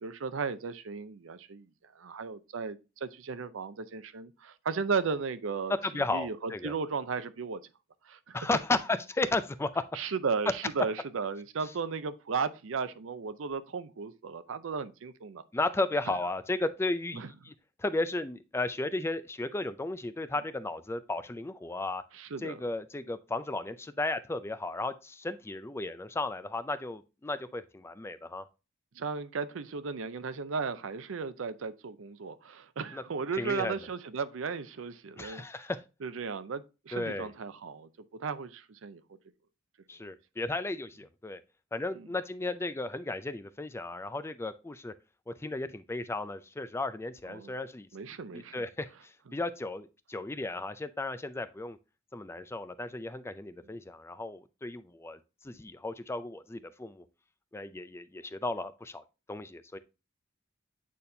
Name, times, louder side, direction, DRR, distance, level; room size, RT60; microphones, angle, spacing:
voice 1, 0.0-7.6 8.0-8.4 9.9-15.4 17.1-17.3 22.1-22.6 28.9-35.4 36.0-37.9 38.2-39.0 40.0-40.1 41.9-42.1 47.3-47.5 47.9-48.7, right 5 dB, 85° right, 0.5 m, -35 dB
voice 2, 5.8-6.7 8.3-9.8 15.5-17.5 17.8-22.0 22.4-28.4 32.9-33.0 33.4-33.7 35.2-35.8 36.9-37.3 39.9-41.4 41.7-44.9 45.3-47.9 48.3-51.8 52.1-55.2 55.4-57.0 57.5-59.8, left 2 dB, 15° left, 0.4 m, -34 dB
8.5 x 4.2 x 2.7 m
head